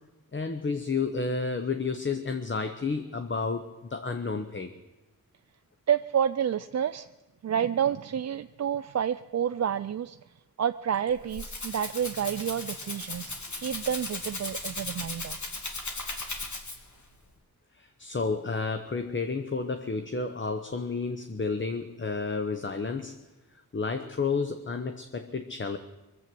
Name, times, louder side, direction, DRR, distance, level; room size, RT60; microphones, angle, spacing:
voice 1, 0.3-4.7 17.7-23.1 23.7-25.8, left 4 dB, 30° left, 8 dB, 0.9 m, -31 dB
voice 2, 5.9-7.1 7.4-10.2 10.6-15.4, right 9 dB, 45° right, 10 dB, 0.4 m, -29 dB
Rattle (instrument), 11.0-17.0, left 2 dB, 50° left, 2.2 m, -37 dB
22.0 x 7.8 x 7.7 m, 1.1 s
wide cardioid pair, 65°, 36 cm